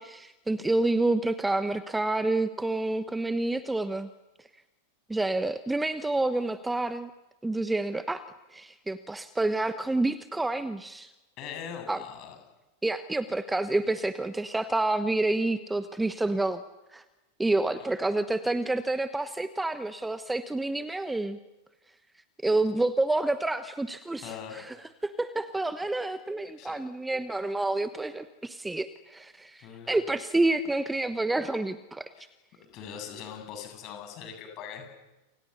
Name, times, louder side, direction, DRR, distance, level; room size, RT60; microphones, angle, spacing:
voice 1, 0.0-4.1 5.1-7.1 7.4-8.2 8.5-11.1 11.9-12.0 12.8-16.6 16.9-17.0 17.4-21.4 22.4-24.8 25.0-32.1, right 2 dB, 5° right, 12 dB, 1.1 m, -28 dB
voice 2, 11.4-12.4 17.7-17.8 24.2-24.6 26.6-26.8 29.6-29.9 32.2-32.3 32.7-34.9, left 8 dB, 40° left, 5 dB, 7.9 m, -41 dB
29.5 x 27.0 x 7.0 m, 1.1 s
figure-of-eight pair, 90°, 0 cm